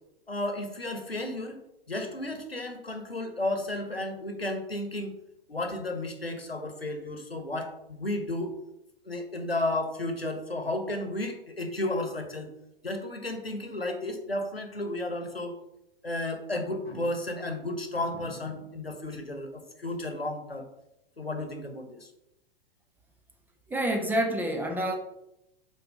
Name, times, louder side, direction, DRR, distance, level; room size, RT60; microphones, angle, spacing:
voice 1, 0.3-1.6 1.9-5.2 5.5-8.5 9.0-12.5 12.8-15.5 16.0-20.7 21.2-22.1, left 1 dB, 90° left, 6 dB, 1.1 m, -33 dB
voice 2, 23.7-25.0, right 1 dB, 5° right, 2 dB, 0.7 m, -27 dB
5.5 x 4.1 x 5.2 m, 0.86 s
figure-of-eight pair, 105°, 29 cm